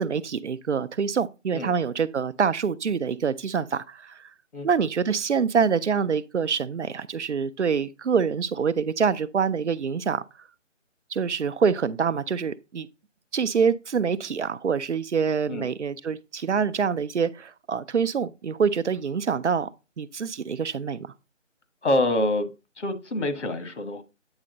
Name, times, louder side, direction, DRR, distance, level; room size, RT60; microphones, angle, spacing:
voice 1, 0.0-4.3 4.6-10.2 11.1-12.9 13.3-19.7 20.0-21.1, right 6 dB, 65° right, 0.6 m, -25 dB
voice 2, 21.8-22.5 22.8-24.0, left 1 dB, 65° left, 1.4 m, -26 dB
8.9 x 4.3 x 3.9 m
figure-of-eight pair, 165°, 38 cm